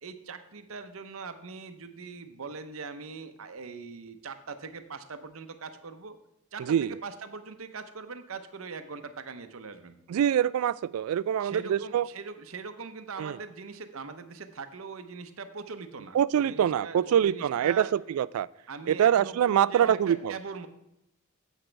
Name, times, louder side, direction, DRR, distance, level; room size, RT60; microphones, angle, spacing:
voice 1, 0.0-6.2 6.5-10.0 11.4-17.9 18.7-20.7, right 4 dB, 70° right, 9 dB, 0.8 m, -41 dB
voice 2, 6.6-7.0 10.1-12.1 13.2-13.4 16.1-18.5 18.9-20.3, right 9 dB, 85° right, 17 dB, 0.3 m, -25 dB
10.0 x 8.2 x 3.3 m, 0.86 s
head